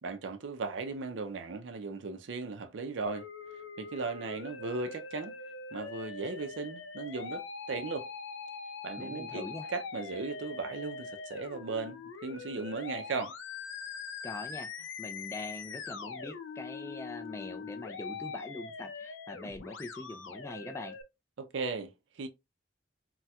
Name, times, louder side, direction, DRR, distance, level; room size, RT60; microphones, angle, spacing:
voice 1, 0.0-3.3 3.8-5.4 5.7-8.1 8.8-13.3 21.4-22.3, right 4 dB, 75° right, 0.5 m, -37 dB
Musical instrument, 3.0-21.0, left 5 dB, 85° left, 0.5 m, -43 dB
voice 2, 9.0-9.7 14.2-21.0, left 2 dB, 15° left, 0.3 m, -43 dB
4.1 x 2.2 x 2.3 m
head